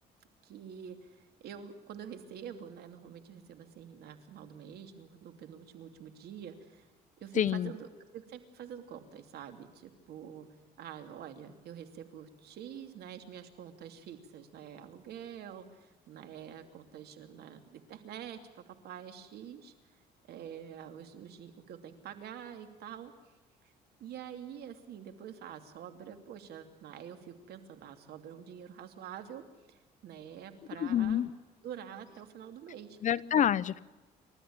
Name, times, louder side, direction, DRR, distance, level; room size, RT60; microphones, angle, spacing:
voice 1, 0.4-6.9 7.2-10.5 10.8-19.7 20.3-23.1 24.0-31.2 31.6-33.0, right 8 dB, 70° right, 2.9 m, -47 dB
voice 2, 7.4-7.7 30.8-31.3 33.0-33.8, left 9 dB, 45° left, 0.7 m, -27 dB
30.0 x 13.5 x 8.8 m
cardioid pair, 110°, 17 cm